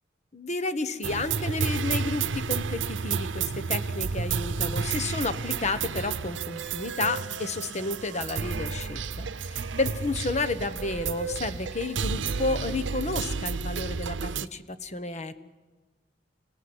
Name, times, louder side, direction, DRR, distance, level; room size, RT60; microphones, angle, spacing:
voice 1, 0.3-9.3 9.8-15.4, left 3 dB, 40° left, 12 dB, 1.2 m, -31 dB
sound 1, 1.0-14.5, right 5 dB, 85° right, 0.8 m, -31 dB
sound 2, 6.3-7.3 8.5-9.1 10.8-11.4 12.3-12.9, right 4 dB, 60° right, 1.6 m, -40 dB
27.5 x 17.0 x 9.8 m, 1.3 s
head